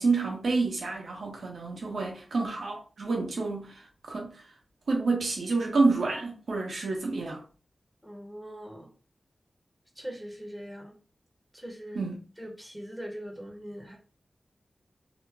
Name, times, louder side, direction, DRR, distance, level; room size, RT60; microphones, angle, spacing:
voice 1, 0.0-4.4 4.9-7.4 11.9-12.2, right 3 dB, 75° right, 1.0 m, -28 dB
voice 2, 8.0-8.9 10.0-11.0 11.5-12.1 12.4-14.0, equal, 5° right, 0.8 m, -41 dB
2.9 x 2.0 x 3.4 m
wide cardioid pair, 120°, 0 cm